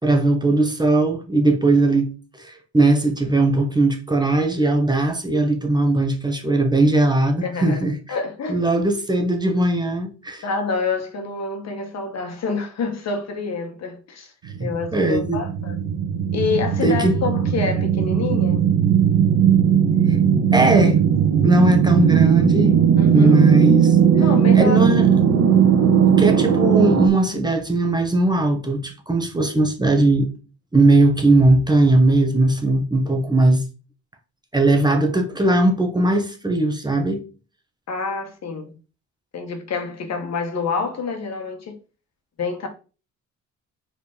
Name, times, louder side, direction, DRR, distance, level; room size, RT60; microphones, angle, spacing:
voice 1, 0.0-7.9 8.5-10.4 14.4-15.4 16.8-17.1 20.1-20.2 20.5-21.0 21.4-22.8 23.1-24.0 24.5-25.1 26.2-30.3 30.7-33.6 34.5-37.2, right 2 dB, 15° right, 1.4 m, -19 dB
voice 2, 7.4-8.6 10.4-14.3 14.6-15.8 16.3-18.6 23.0-23.4 24.2-24.8 37.9-38.7 39.3-41.7 42.4-42.7, left 4 dB, 60° left, 1.9 m, -27 dB
sound 1, 14.5-27.1, right 8 dB, 85° right, 1.5 m, -17 dB
5.0 x 4.6 x 5.2 m
cardioid pair, 90°, 30 cm